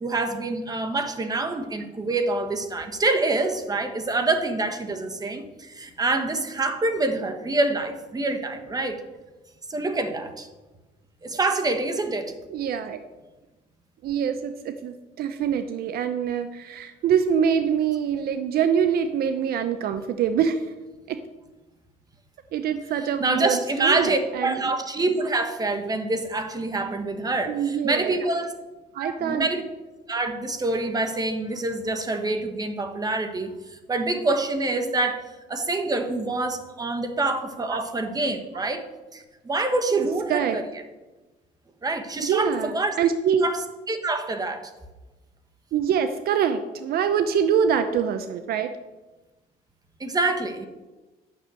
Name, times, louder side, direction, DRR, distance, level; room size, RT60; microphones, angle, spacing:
voice 1, 0.0-9.0 9.7-10.5 11.2-12.3 23.0-28.5 29.0-29.6 30.1-35.2 35.5-38.9 39.1-40.6 41.8-43.0 43.4-44.7 50.0-50.7, right 2 dB, 20° right, 6 dB, 1.3 m, -26 dB
voice 2, 12.5-13.0 14.0-20.6 21.1-21.2 22.5-24.7 27.5-28.2 28.9-29.5 37.7-37.8 40.3-40.6 42.2-43.4 45.7-48.7, right 7 dB, 65° right, 10 dB, 0.7 m, -24 dB
9.6 x 6.3 x 7.6 m, 1.2 s
cardioid pair, 110°, 17 cm